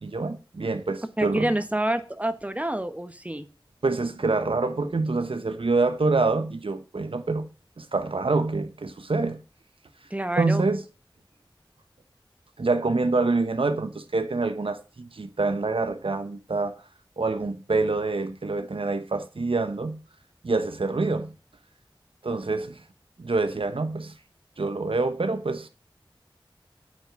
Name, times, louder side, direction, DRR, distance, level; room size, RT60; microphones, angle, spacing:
voice 1, 0.0-1.5 3.8-7.5 7.8-9.4 10.4-10.8 12.6-16.7 17.2-20.0 20.4-21.3 22.2-22.8 23.2-24.1 24.6-25.7, right 3 dB, 80° right, 1.1 m, -26 dB
voice 2, 1.2-3.4 10.1-10.7, right 1 dB, 15° right, 1.3 m, -27 dB
8.8 x 6.4 x 7.4 m
wide cardioid pair, 55°, 9 cm